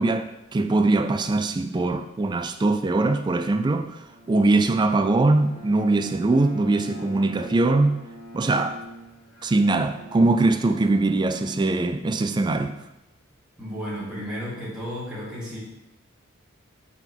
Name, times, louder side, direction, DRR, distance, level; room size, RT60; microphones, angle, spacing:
voice 1, 0.0-8.0 8.3-8.8 9.4-12.7, right 2 dB, 20° right, 0.3 m, -22 dB
Bowed string instrument, 4.0-12.4, right 1 dB, 55° right, 1.8 m, -44 dB
voice 2, 13.6-15.6, equal, 5° right, 1.9 m, -33 dB
5.2 x 4.1 x 4.5 m
head